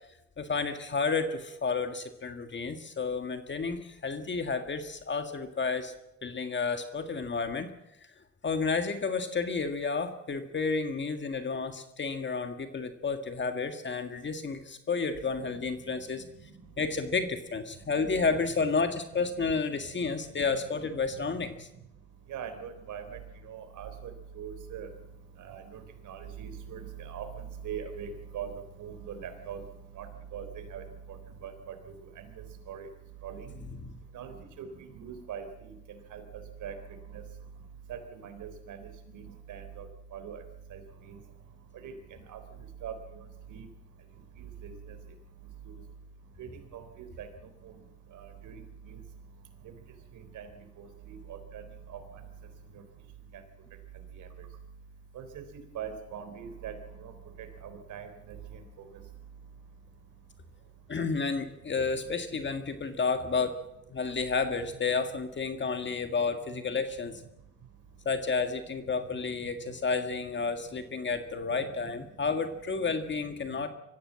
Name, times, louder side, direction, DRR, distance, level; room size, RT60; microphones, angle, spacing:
voice 1, 0.4-5.9 6.2-7.7 8.4-16.2 16.8-21.7 33.7-33.9 60.9-63.6 63.9-67.2 68.1-73.7, left 4 dB, 40° left, 7 dB, 1.8 m, -31 dB
voice 2, 22.3-24.9 25.4-28.5 28.8-29.6 30.0-30.1 30.3-30.8 31.4-31.7 32.2-32.3 32.7-32.9 33.2-33.5 34.1-34.7 34.9-35.7 36.1-36.2 36.6-36.7 37.1-37.2 37.9-39.9 40.1-40.4 40.7-40.8 41.1-41.2 41.8-41.9 42.3-42.4 42.8-42.9 43.5-43.7 44.4-44.7 45.7-45.8 46.4-47.3 47.6-47.7 48.1-49.0 50.1-50.5 50.8-51.6 51.9-52.0 54.2-54.3 55.1-55.2 55.7-56.7 57.0-57.1 57.4-58.6, right 8 dB, 80° right, 7 dB, 3.9 m, -41 dB
23.5 x 15.5 x 7.5 m, 0.90 s
cardioid pair, 90°, 30 cm